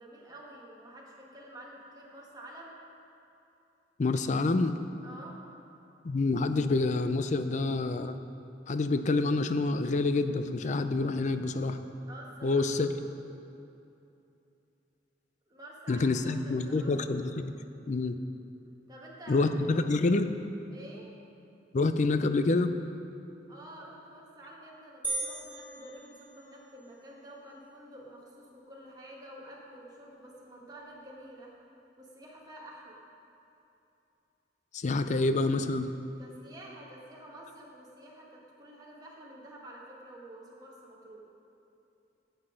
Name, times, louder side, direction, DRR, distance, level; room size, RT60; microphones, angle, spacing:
voice 1, 0.0-2.7 5.0-5.4 12.1-12.7 15.5-16.9 18.9-19.7 20.7-21.1 23.5-31.5 32.0-33.0 36.2-41.2, right 1 dB, 20° right, -4 dB, 1.6 m, -49 dB
voice 2, 4.0-4.8 6.0-8.2 8.7-11.8 12.4-12.9 15.9-17.5 17.9-18.2 19.3-20.3 21.7-22.8 34.7-35.9, left 3 dB, 40° left, 10 dB, 0.4 m, -27 dB
sound 1, 25.0-26.8, right 3 dB, 10° left, 1.4 m, -37 dB
9.7 x 8.0 x 5.0 m, 2.8 s
head